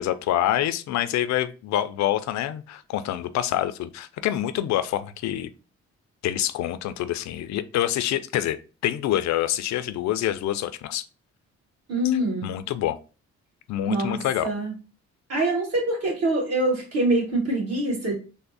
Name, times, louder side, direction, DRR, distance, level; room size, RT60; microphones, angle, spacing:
voice 1, 0.0-5.5 6.2-8.6 8.8-11.0 12.4-13.0 13.7-14.5, left 12 dB, 70° left, 0.4 m, -26 dB
voice 2, 11.9-12.5 13.8-14.7 15.3-18.1, right 1 dB, 55° right, 1.9 m, -24 dB
3.4 x 2.0 x 3.9 m
cardioid pair, 90°, 29 cm